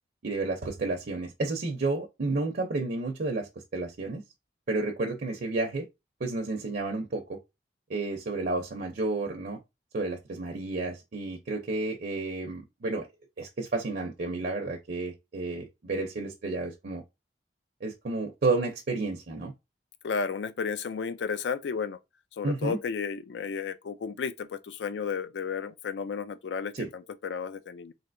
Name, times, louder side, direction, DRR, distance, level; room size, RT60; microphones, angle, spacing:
voice 1, 0.2-4.2 4.7-5.9 6.2-7.4 7.9-9.6 9.9-13.1 13.4-17.0 17.8-19.5 22.4-22.8 26.7-26.9, right 3 dB, 55° right, 0.5 m, -31 dB
voice 2, 20.0-22.0 22.4-27.9, left 6 dB, 75° left, 0.4 m, -33 dB
3.2 x 2.7 x 2.5 m
head